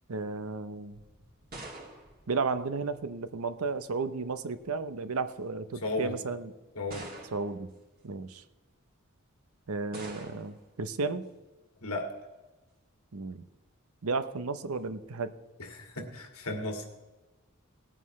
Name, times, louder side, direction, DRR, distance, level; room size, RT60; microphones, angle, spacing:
voice 1, 0.1-1.0 2.3-6.5 7.3-7.7 8.0-8.4 9.7-11.2 13.1-13.4 14.0-15.3, right 4 dB, 85° right, 12 dB, 0.8 m, -33 dB
sound 1, 0.9-3.3 4.3-4.7 5.6-5.7 6.9-7.7 9.9-10.7, right 2 dB, 45° right, 2.7 m, -46 dB
voice 2, 5.8-6.2 6.8-7.1 11.8-12.1 15.7-16.8, left 2 dB, 90° left, 2 dB, 2.1 m, -34 dB
18.5 x 9.1 x 3.2 m, 1.1 s
head